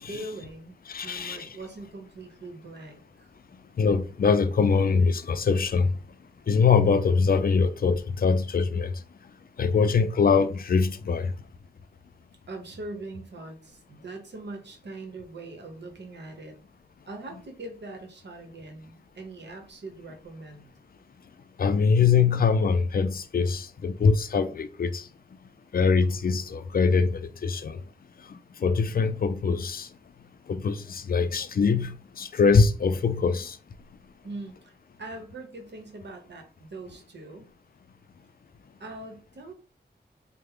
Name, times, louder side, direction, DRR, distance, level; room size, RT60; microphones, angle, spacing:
voice 1, 0.1-3.3 6.4-6.5 12.5-16.6 17.1-20.7 34.2-37.5 38.8-39.5, right 2 dB, 90° right, 0.9 m, -42 dB
voice 2, 0.9-1.5 3.8-6.0 6.5-8.9 9.6-11.3 21.6-25.0 25.7-27.8 28.6-29.9 30.5-33.6, left 5 dB, 55° left, 0.4 m, -23 dB
3.3 x 2.1 x 3.5 m
wide cardioid pair, 85°, 18 cm